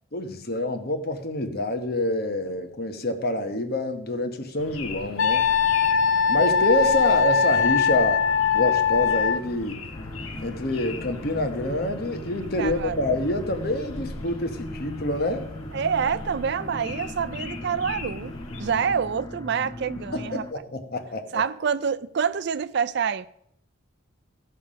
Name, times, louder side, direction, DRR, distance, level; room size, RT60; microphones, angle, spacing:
voice 1, 0.1-5.4 6.3-8.2 8.5-9.8 10.4-15.5 20.0-21.4, left 1 dB, 45° left, 1.1 m, -27 dB
sound 1, 4.6-18.9, left 2 dB, 80° left, 1.5 m, -39 dB
Wind instrument woodwind instrument, 5.2-9.4, left 6 dB, 65° left, 0.6 m, -21 dB
sound 2, 9.9-20.5, left 1 dB, 15° left, 0.5 m, -39 dB
voice 2, 12.6-13.0 15.7-18.3 18.6-20.5 21.3-23.3, right 6 dB, 55° right, 0.4 m, -27 dB
15.5 x 5.7 x 5.1 m
head